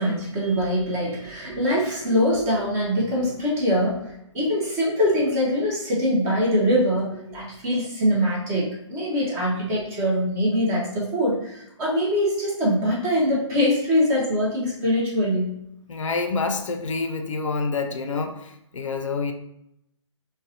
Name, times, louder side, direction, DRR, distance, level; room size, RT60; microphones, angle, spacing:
voice 1, 0.0-15.6, equal, 15° right, -4 dB, 0.6 m, -23 dB
voice 2, 15.9-19.3, left 4 dB, 80° left, 6 dB, 0.4 m, -27 dB
2.4 x 2.0 x 2.7 m, 0.79 s
figure-of-eight pair, 140°, 16 cm